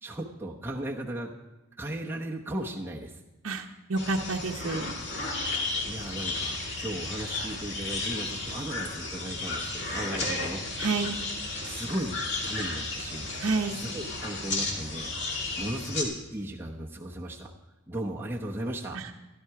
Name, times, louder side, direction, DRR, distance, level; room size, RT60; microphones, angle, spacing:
voice 1, 0.0-1.3 1.8-3.2 5.8-10.6 11.6-12.2 12.4-13.3 13.7-15.1 15.6-17.5 17.9-19.0, right 1 dB, 10° right, -3 dB, 0.9 m, -36 dB
voice 2, 3.4-5.0 10.8-11.2 13.4-13.8 18.9-19.1, right 3 dB, 70° right, 1 dB, 0.9 m, -29 dB
sound 1, 4.0-16.0, left 2 dB, 55° left, 2.5 m, -33 dB
14.5 x 12.0 x 4.8 m, 1.0 s
head